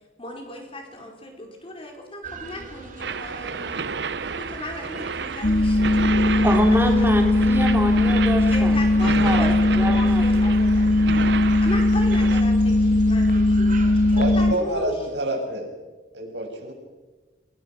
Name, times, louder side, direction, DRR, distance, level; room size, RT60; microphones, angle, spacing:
voice 1, 0.2-3.8 4.4-7.4 8.5-11.0 11.6-14.9, left 1 dB, 30° left, 2 dB, 5.1 m, -36 dB
sound 1, 2.2-14.5, right 3 dB, 50° right, 2.9 m, -42 dB
sound 2, 3.0-12.4, right 5 dB, 70° right, 0.8 m, -31 dB
sound 3, 5.4-14.5, left 1 dB, 60° left, 1.4 m, -19 dB
voice 2, 6.4-9.5 9.8-10.2, equal, 15° right, 2 dB, 3.6 m, -26 dB
voice 3, 14.1-15.7 16.1-16.7, right 1 dB, 90° right, -1 dB, 7.1 m, -28 dB
28.0 x 21.0 x 6.1 m, 1.2 s
head